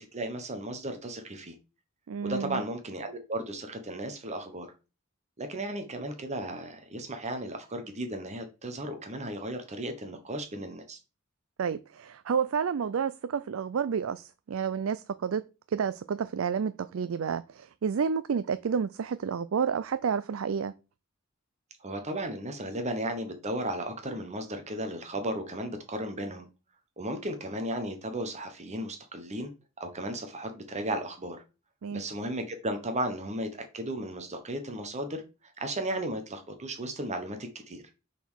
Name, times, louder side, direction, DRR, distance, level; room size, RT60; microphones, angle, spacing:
voice 1, 0.0-1.5 2.2-4.7 5.4-11.0 21.8-26.5 27.0-29.5 29.8-31.4 31.9-35.2 35.6-37.4 37.7-37.8, right 1 dB, 35° right, 1.2 m, -35 dB
voice 2, 2.1-2.6 11.6-15.4 15.7-20.7 31.8-32.1, right 6 dB, 75° right, 0.4 m, -30 dB
6.7 x 4.3 x 6.4 m
head